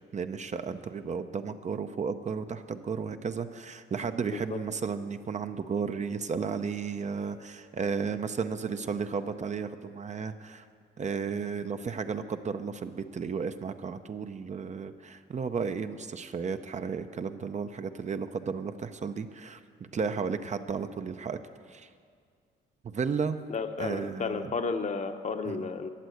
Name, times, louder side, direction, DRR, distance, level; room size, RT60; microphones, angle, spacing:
voice 1, 0.1-10.7 11.0-19.6 19.9-21.4 21.7-21.9 22.8-23.4 23.8-24.5 25.5-25.7, right 5 dB, 35° right, 9 dB, 0.6 m, -33 dB
voice 2, 4.3-4.6 23.5-25.9, left 4 dB, 35° left, 7 dB, 0.9 m, -32 dB
12.5 x 8.1 x 7.8 m, 2.1 s
cardioid pair, 90°, 20 cm